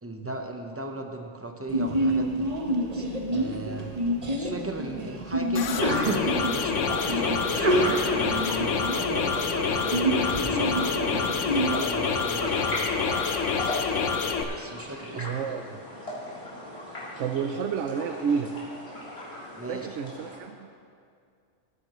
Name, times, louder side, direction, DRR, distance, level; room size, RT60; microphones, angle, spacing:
voice 1, 0.0-2.5 2.9-3.9 4.4-12.8 14.6-15.3 19.6-19.9, right 2 dB, 15° right, 3 dB, 0.7 m, -37 dB
Sneeze, 1.7-11.7, right 1 dB, 35° right, 1.0 m, -28 dB
sound 1, 5.6-14.4, left 5 dB, 80° left, 1.1 m, -27 dB
sound 2, 6.5-20.4, left 1 dB, 55° left, 3.6 m, -38 dB
voice 2, 15.1-15.8 17.2-18.5 19.7-20.7, right 6 dB, 75° right, 5 dB, 0.9 m, -30 dB
19.0 x 9.8 x 3.1 m, 2.3 s
omnidirectional pair, 1.3 m